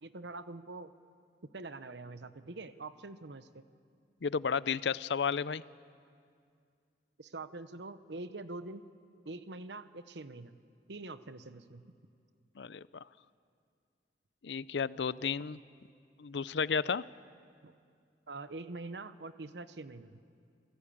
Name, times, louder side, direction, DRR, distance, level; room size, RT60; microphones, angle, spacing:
voice 1, 0.0-0.9 1.5-3.6 7.2-8.8 9.2-10.6 10.9-11.9 17.6-17.7 18.3-20.2, right 3 dB, 75° right, 12 dB, 1.0 m, -44 dB
voice 2, 4.2-5.6 12.6-13.0 14.4-15.6 16.2-17.0, left 6 dB, 80° left, 18 dB, 0.5 m, -32 dB
28.0 x 17.0 x 8.8 m, 2.3 s
head